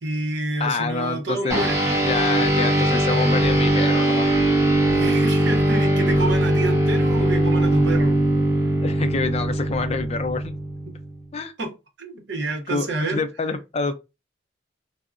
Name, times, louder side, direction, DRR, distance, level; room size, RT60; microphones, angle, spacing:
voice 1, 0.0-1.8 4.9-8.2 11.6-11.7 12.0-13.2, right 2 dB, 65° right, 0.8 m, -28 dB
voice 2, 0.6-1.6 2.0-4.4 8.8-10.5 11.3-11.5 12.7-13.9, left 4 dB, 35° left, 0.4 m, -27 dB
sound 1, 1.5-11.2, right 1 dB, 15° right, 1.0 m, -20 dB
3.6 x 2.0 x 2.4 m
head